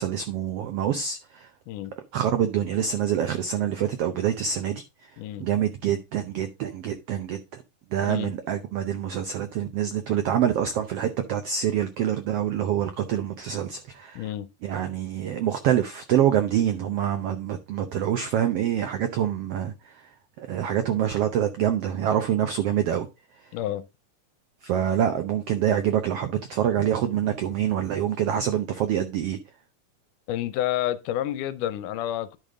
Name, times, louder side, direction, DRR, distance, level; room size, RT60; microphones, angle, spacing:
voice 1, 0.0-1.5 2.1-4.8 5.4-7.6 7.9-14.3 14.6-20.1 20.4-23.1 24.6-29.4, right 10 dB, 90° right, 1.3 m, -26 dB
voice 2, 5.2-5.5 8.0-8.3 14.2-14.5 23.5-23.9 30.3-32.4, left 12 dB, 80° left, 2.2 m, -29 dB
10.5 x 5.2 x 3.6 m
omnidirectional pair, 3.7 m